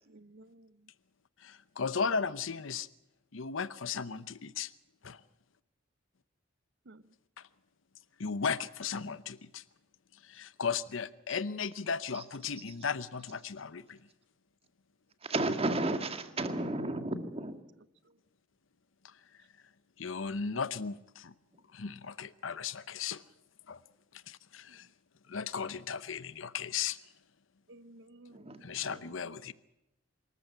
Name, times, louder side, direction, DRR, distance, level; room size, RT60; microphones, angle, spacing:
voice 1, 0.1-0.9 6.9-7.1 18.0-18.2 24.7-24.8 27.7-29.4, right 2 dB, 60° right, 0.7 m, -56 dB
voice 2, 1.4-2.9 3.3-4.7 5.0-5.2 7.4-7.5 8.2-9.6 10.2-14.0 19.0-19.1 20.0-21.3 21.7-23.2 23.7-23.8 24.1-24.9 25.3-27.0 28.6-29.5, left 6 dB, 85° left, 0.8 m, -36 dB
voice 3, 15.2-17.6 28.3-29.0, right 2 dB, 30° right, 1.9 m, -33 dB
25.5 x 14.0 x 8.9 m
head